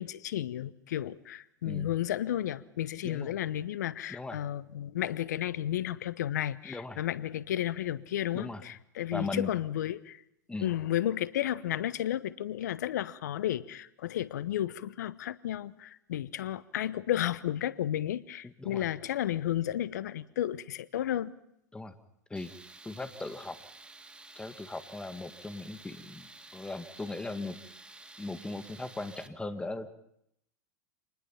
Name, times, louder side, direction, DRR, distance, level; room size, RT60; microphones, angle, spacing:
voice 1, 0.0-10.2 10.6-21.3, left 12 dB, 70° left, 18 dB, 0.9 m, -33 dB
voice 2, 3.0-3.3 4.1-4.4 6.6-7.0 8.3-8.6 9.1-9.5 10.5-10.7 18.4-18.9 21.7-22.0 22.3-22.5 22.8-23.6 24.4-27.6 28.2-29.9, left 3 dB, 10° left, 9 dB, 1.8 m, -38 dB
Tools, 22.4-29.3, right 2 dB, 10° right, 1.5 m, -51 dB
26.5 x 20.0 x 5.7 m, 0.77 s
hypercardioid pair, 95°, 10 cm